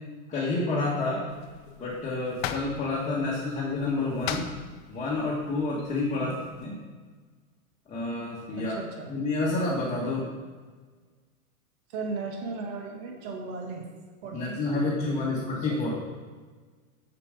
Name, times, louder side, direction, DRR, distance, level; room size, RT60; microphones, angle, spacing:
voice 1, 0.3-1.3 1.8-4.5 4.9-6.3 6.6-6.8 7.9-8.8 9.1-10.3 14.3-15.9, left 2 dB, 15° left, -5 dB, 1.4 m, -29 dB
sound 1, 1.3-6.7, left 9 dB, 35° left, 0.5 m, -40 dB
voice 2, 8.5-9.1 11.9-13.9 14.2-15.8, right 4 dB, 45° right, 1 dB, 1.9 m, -37 dB
7.1 x 6.8 x 4.9 m, 1.5 s
hypercardioid pair, 140°, 43 cm